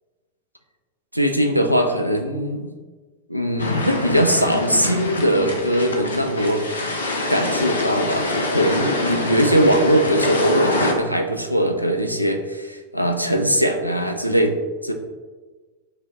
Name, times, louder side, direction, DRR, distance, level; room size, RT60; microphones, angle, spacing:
voice 1, 1.1-2.7 3.3-6.6 7.3-14.5 14.8-14.9, equal, 90° right, 5 dB, 0.3 m, -20 dB
sound 1, 3.6-10.9, left 2 dB, 75° left, 0.5 m, -25 dB
4.8 x 2.1 x 2.8 m, 1.3 s
figure-of-eight pair, 90°, 0 cm